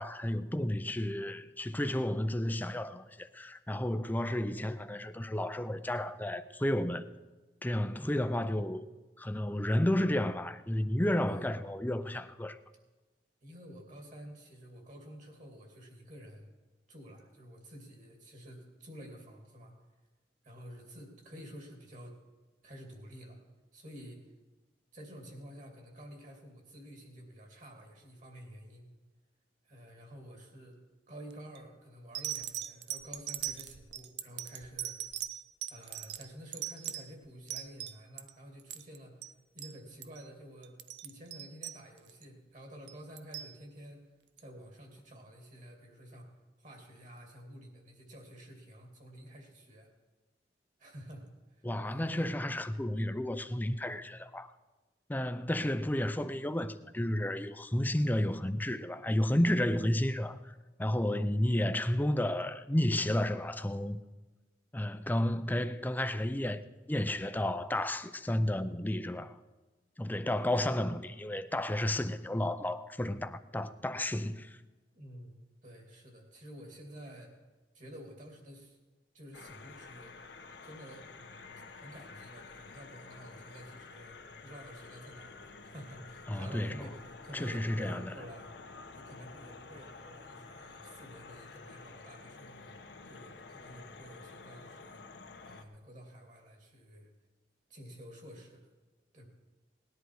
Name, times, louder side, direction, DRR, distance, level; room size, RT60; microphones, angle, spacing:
voice 1, 0.0-7.1 7.6-8.9 9.2-12.6 51.6-54.5 55.1-60.5 60.8-64.0 64.7-66.6 66.9-69.4 70.0-74.6 86.3-86.7 87.3-88.0, left 1 dB, 10° left, 0.5 m, -32 dB
voice 2, 8.0-8.4 11.2-11.5 13.4-16.5 16.9-19.7 20.4-22.2 22.6-23.4 23.7-24.2 24.9-28.9 29.6-30.8 31.1-35.0 35.7-39.2 39.5-44.1 44.4-46.3 46.6-49.9 50.8-52.4 74.9-77.4 77.7-78.8 79.1-80.2 80.6-88.5 88.9-92.8 93.0-95.0 95.4-97.1 97.7-98.7 99.1-99.3, equal, 45° right, 2.8 m, -50 dB
sound 1, 31.3-31.6 32.1-38.3 38.6-39.0 39.2-39.3 39.6-39.8 40.0-40.2 40.6-42.2 42.9-43.5 44.4-44.5, right 11 dB, 70° right, 0.6 m, -40 dB
sound 2, 79.3-95.6, left 4 dB, 90° left, 1.2 m, -50 dB
18.5 x 10.5 x 4.8 m
head